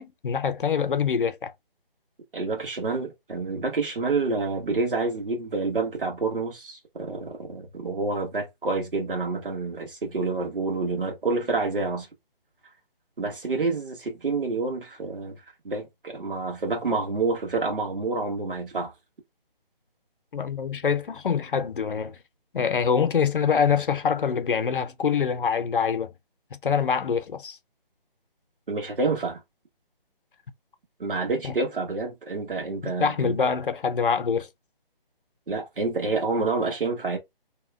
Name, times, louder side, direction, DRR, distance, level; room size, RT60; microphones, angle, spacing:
voice 1, 0.0-1.5 20.3-22.2 22.5-26.1 26.5-27.6 31.4-31.5 32.8-34.5, left 6 dB, 65° left, 0.6 m, -25 dB
voice 2, 2.3-12.1 13.2-15.3 15.6-18.9 28.7-29.4 31.0-33.4 35.5-37.2, right 3 dB, 65° right, 1.5 m, -28 dB
2.9 x 2.2 x 3.4 m
hypercardioid pair, 170°, 29 cm